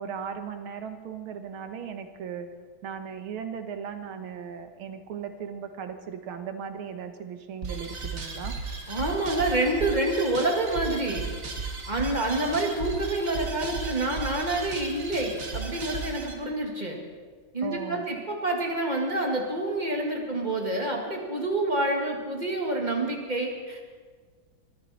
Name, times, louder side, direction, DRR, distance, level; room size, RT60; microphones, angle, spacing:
voice 1, 0.0-2.5 2.8-8.6 17.6-18.0, right 7 dB, 85° right, 7 dB, 2.0 m, -37 dB
sound 1, 7.6-16.3, right 4 dB, 40° right, 1.9 m, -35 dB
voice 2, 8.9-11.3 11.9-17.0 17.5-24.0, right 2 dB, 20° right, 1 dB, 2.0 m, -28 dB
22.5 x 14.0 x 4.2 m, 1.5 s
omnidirectional pair, 2.3 m